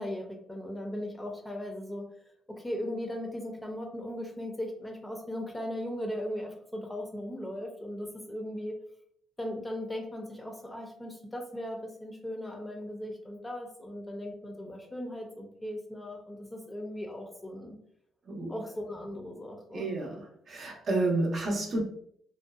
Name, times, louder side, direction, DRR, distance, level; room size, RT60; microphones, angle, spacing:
voice 1, 0.0-2.1 2.5-8.8 9.4-17.8 18.5-19.8, left 1 dB, 15° left, 2 dB, 0.5 m, -38 dB
voice 2, 19.7-20.2 20.5-21.8, right 2 dB, 55° right, 0 dB, 0.7 m, -30 dB
2.6 x 2.2 x 2.3 m, 0.66 s
cardioid pair, 90°, 0 cm